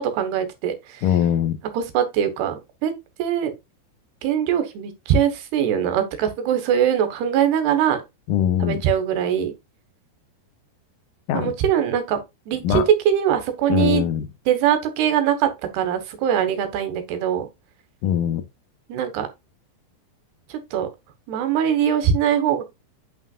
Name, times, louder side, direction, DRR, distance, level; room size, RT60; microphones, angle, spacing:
voice 1, 0.0-1.0 1.7-2.9 3.2-3.5 4.2-8.0 8.6-9.5 11.3-12.2 12.5-14.0 14.5-17.5 18.9-19.3 20.5-20.9 21.3-22.6, right 9 dB, 75° right, 3.2 m, -22 dB
voice 2, 1.0-1.6 8.3-8.8 11.3-11.5 12.6-12.9 13.7-14.3 18.0-18.4, left 10 dB, 85° left, 1.9 m, -21 dB
9.1 x 5.7 x 2.4 m
omnidirectional pair, 5.0 m